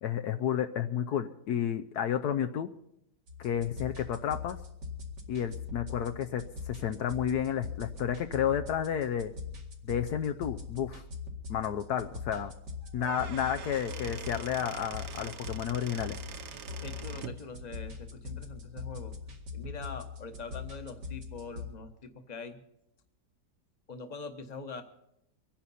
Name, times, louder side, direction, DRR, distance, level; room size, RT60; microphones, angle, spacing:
voice 1, 0.0-2.7 3.4-4.6 5.3-9.3 9.8-11.0 11.5-12.5 12.9-16.2, left 9 dB, 70° left, 7 dB, 1.2 m, -31 dB
sound 1, 3.3-21.7, left 5 dB, 85° right, 2.7 m, -42 dB
Squeak / Wood, 12.8-17.4, right 7 dB, 55° right, 0.9 m, -44 dB
voice 2, 16.8-19.1 19.5-22.6 23.9-24.8, left 4 dB, 30° left, 7 dB, 1.2 m, -43 dB
25.0 x 10.0 x 4.2 m, 0.79 s
omnidirectional pair, 1.8 m